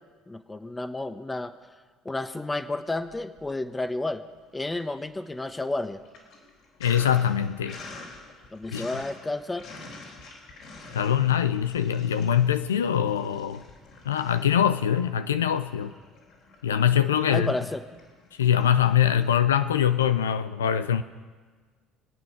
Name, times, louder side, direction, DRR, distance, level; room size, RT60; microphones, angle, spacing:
voice 1, 0.3-1.7 2.0-4.2 4.5-6.0 8.5-9.7 17.3-17.8, left 2 dB, 15° left, 10 dB, 1.1 m, -31 dB
Sink (filling or washing), 3.1-3.9 4.2-20.3, left 3 dB, 65° left, 4.0 m, -48 dB
voice 2, 6.8-7.8 8.7-8.9 10.9-13.6 14.1-15.9 16.6-17.5 18.4-21.0, left 9 dB, 90° left, 11 dB, 0.5 m, -23 dB
25.0 x 9.0 x 5.9 m, 1.5 s
hypercardioid pair, 65°, 0 cm